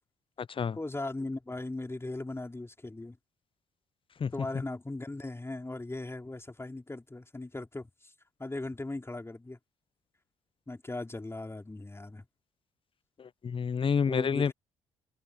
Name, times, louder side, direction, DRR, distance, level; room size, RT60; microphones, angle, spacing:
voice 1, 0.7-3.2 4.3-8.1 8.4-9.6 10.7-12.3 14.1-14.5, left 2 dB, 15° left, 4.3 m, -38 dB
voice 2, 13.2-14.5, left 6 dB, 35° left, 0.9 m, -28 dB
figure-of-eight pair, 45°, 15 cm